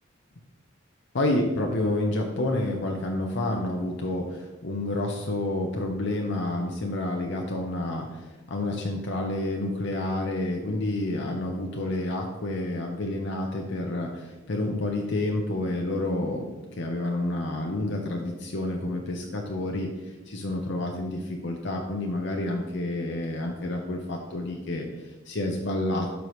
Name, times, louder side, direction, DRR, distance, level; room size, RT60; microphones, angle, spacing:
voice 1, 1.1-16.5 16.7-26.1, left 1 dB, 65° left, 1 dB, 0.7 m, -29 dB
12.0 x 4.8 x 3.1 m, 1.2 s
head